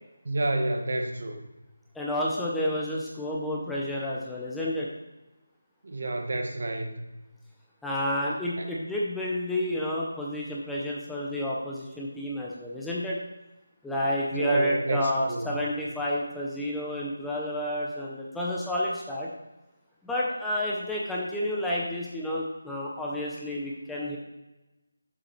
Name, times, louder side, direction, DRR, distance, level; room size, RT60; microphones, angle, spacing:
voice 1, 0.2-1.5 5.8-7.1 8.5-8.7 14.3-15.6, right 2 dB, 60° right, 4 dB, 1.2 m, -30 dB
voice 2, 1.9-4.9 7.8-13.2 13.8-19.3 20.0-24.2, left 1 dB, 5° left, -5 dB, 0.6 m, -30 dB
7.1 x 5.2 x 4.5 m, 1.0 s
figure-of-eight pair, 170°, 0 cm